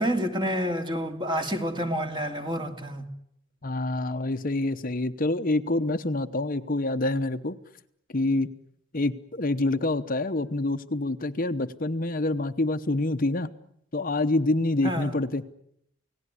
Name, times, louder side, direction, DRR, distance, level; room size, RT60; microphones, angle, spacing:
voice 1, 0.0-3.0 14.8-15.1, equal, 25° right, 2.8 m, -28 dB
voice 2, 3.6-7.6 8.1-8.5 8.9-13.5 13.9-15.4, left 2 dB, 40° left, 1.0 m, -26 dB
29.5 x 18.0 x 9.8 m
head